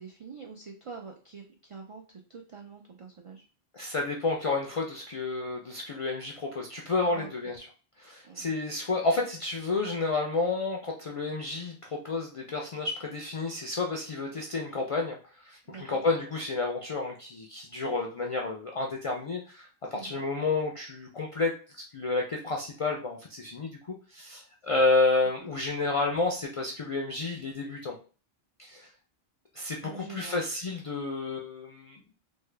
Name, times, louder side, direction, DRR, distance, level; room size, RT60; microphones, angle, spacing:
voice 1, 0.0-3.4 7.1-7.3 8.2-8.5 15.7-16.0 19.8-20.3 29.8-30.4, right 5 dB, 55° right, 2 dB, 0.3 m, -45 dB
voice 2, 3.7-7.7 8.0-28.0 28.6-28.9 29.5-32.0, left 3 dB, 50° left, 0 dB, 0.4 m, -30 dB
3.5 x 2.1 x 3.2 m, 0.37 s
omnidirectional pair, 1.0 m